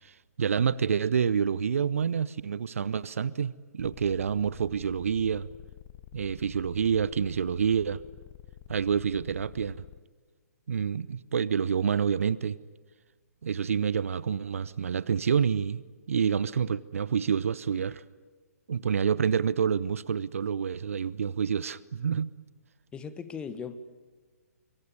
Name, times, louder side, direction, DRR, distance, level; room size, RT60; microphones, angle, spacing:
voice 1, 0.0-5.5 6.1-8.0 8.7-9.8 10.7-12.6 13.4-15.8 16.1-18.0 18.7-22.3, right 7 dB, 55° right, 0.9 m, -28 dB
sound 1, 3.8-10.0, left 13 dB, 30° left, 1.1 m, -49 dB
voice 2, 22.9-23.8, left 6 dB, 10° left, 1.4 m, -38 dB
25.0 x 24.5 x 9.8 m
figure-of-eight pair, 130°, 9 cm